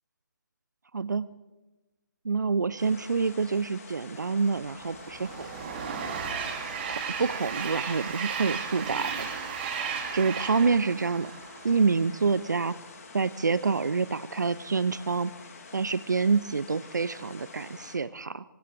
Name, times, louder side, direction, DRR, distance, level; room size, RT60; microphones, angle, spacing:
voice 1, 0.9-1.3 2.2-5.5 6.9-9.3 10.1-11.3 11.6-12.7 13.1-15.3 15.7-18.4, right 4 dB, 70° right, 17 dB, 0.7 m, -27 dB
Rain in the neighborhood, 2.8-18.0, left 4 dB, 50° left, 3.4 m, -48 dB
Train, 4.6-12.0, right 6 dB, 35° right, 3.2 m, -35 dB
29.5 x 25.0 x 3.6 m, 1.1 s
figure-of-eight pair, 140°, 10 cm